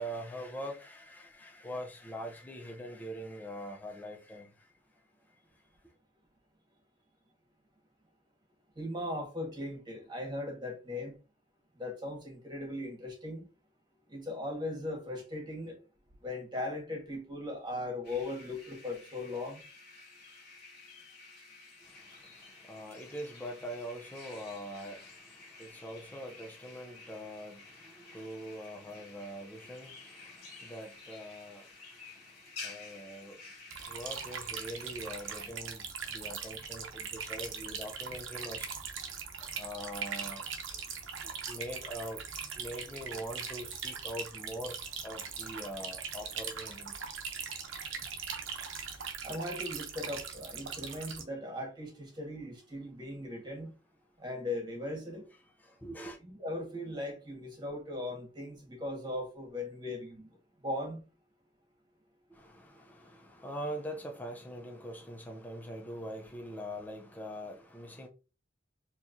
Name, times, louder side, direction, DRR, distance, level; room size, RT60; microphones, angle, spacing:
voice 1, 0.0-4.5 22.4-31.7 32.6-33.4 33.9-38.7 39.6-40.4 41.5-44.8 45.0-46.9 55.6-56.2 62.3-68.1, equal, 10° left, 0.6 m, -43 dB
voice 2, 8.7-11.1 11.8-13.5 14.1-15.7 16.2-19.6 49.2-53.7 54.2-55.2 56.2-60.3 60.6-61.0, left 1 dB, 25° right, 1.5 m, -38 dB
sound 1, 18.0-35.5, left 4 dB, 55° left, 2.1 m, -52 dB
sound 2, 33.7-51.2, right 6 dB, 90° right, 0.8 m, -40 dB
4.4 x 2.9 x 2.6 m
head